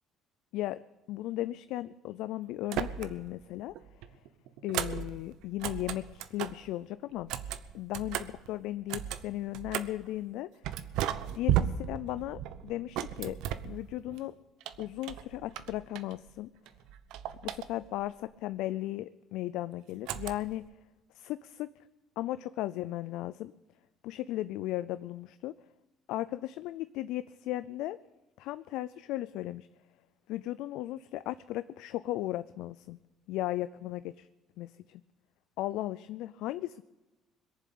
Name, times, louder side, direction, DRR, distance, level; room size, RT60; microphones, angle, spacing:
voice 1, 1.1-3.7 4.6-7.3 7.7-10.5 11.3-13.4 13.6-14.3 14.8-16.5 17.4-20.6 21.1-21.7 22.2-23.5 24.0-25.5 26.1-28.0 28.4-29.7 30.3-33.0 33.3-34.3 34.6-35.0 35.6-36.8, left 15 dB, 80° left, 14 dB, 0.4 m, -36 dB
sound 1, 2.6-3.4 3.7-6.7 7.2-10.1 10.6-14.2 14.6-16.4 16.7-18.1 20.1-20.7, right 11 dB, 75° right, 0.8 m, -36 dB
22.0 x 7.4 x 8.6 m, 1.1 s
cardioid pair, 115°, 0 cm